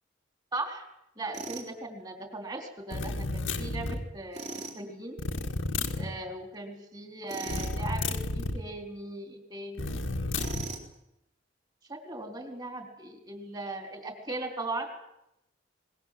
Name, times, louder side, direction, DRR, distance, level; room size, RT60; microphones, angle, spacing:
voice 1, 0.5-0.9 1.2-4.5 4.8-5.2 6.0-9.9 11.9-14.9, right 2 dB, 20° right, 4 dB, 3.8 m, -38 dB
Tools, 1.3-1.7 4.3-4.8 7.3-7.8 10.3-10.9, right 3 dB, 35° right, 3.8 m, -39 dB
sound 1, 2.9-4.1 5.2-6.1 7.5-8.6 9.8-10.7, left 2 dB, 85° left, 1.9 m, -31 dB
24.0 x 20.5 x 7.7 m, 0.83 s
head